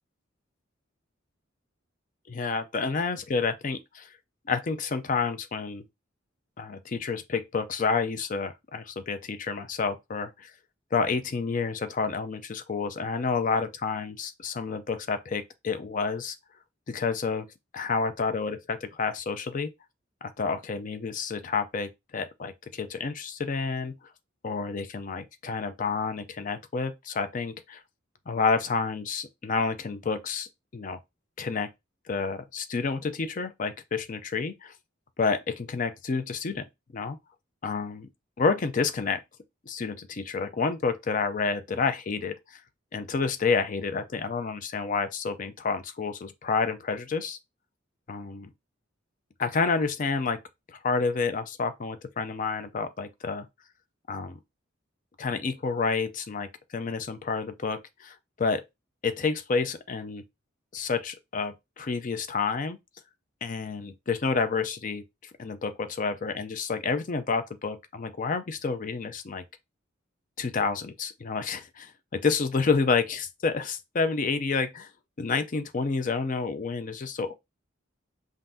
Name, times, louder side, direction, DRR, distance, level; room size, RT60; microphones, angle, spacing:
voice 1, 2.3-4.1 4.5-5.8 6.6-10.5 10.9-16.4 16.9-17.5 17.7-19.7 20.4-23.9 24.4-27.8 28.3-30.5 30.7-31.0 31.4-31.7 32.1-34.7 35.2-36.7 36.9-37.2 37.6-38.1 38.4-39.2 39.7-42.3 42.9-47.4 48.1-48.5 49.4-50.4 50.7-53.5 54.1-54.4 55.2-58.6 59.0-60.2 60.7-62.8 63.4-65.0 65.4-69.4 70.4-74.9 75.2-77.3, left 4 dB, 40° left, 0.5 m, -29 dB
5.6 x 2.5 x 2.7 m
head